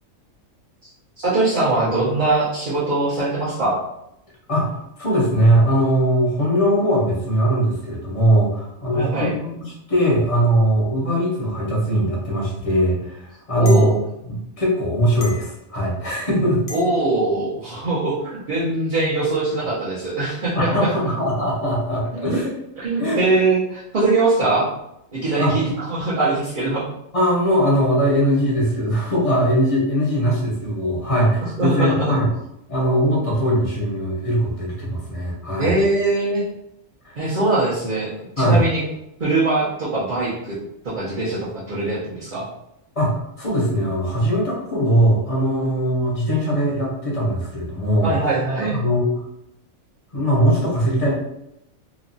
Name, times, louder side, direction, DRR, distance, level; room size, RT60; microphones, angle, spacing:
voice 1, 1.2-3.8 8.9-9.3 13.6-13.9 16.7-21.1 22.1-22.4 22.8-24.7 25.1-26.8 31.4-32.1 35.6-36.4 37.2-38.8 39.2-40.6 40.8-42.5 48.0-48.7, right 2 dB, 45° right, -9 dB, 0.8 m, -22 dB
voice 2, 4.5-13.9 14.2-16.6 20.6-22.5 23.0-23.2 25.4-25.5 27.1-32.3 32.7-35.8 37.0-37.2 38.4-38.6 43.0-48.1 48.6-49.2 50.1-51.1, equal, 35° left, -4 dB, 0.7 m, -20 dB
sound 1, 12.4-12.5 13.7-13.9 15.2-15.5 16.7-16.9, left 3 dB, 85° left, 1.0 m, -35 dB
3.0 x 2.3 x 2.6 m, 0.83 s
omnidirectional pair, 1.3 m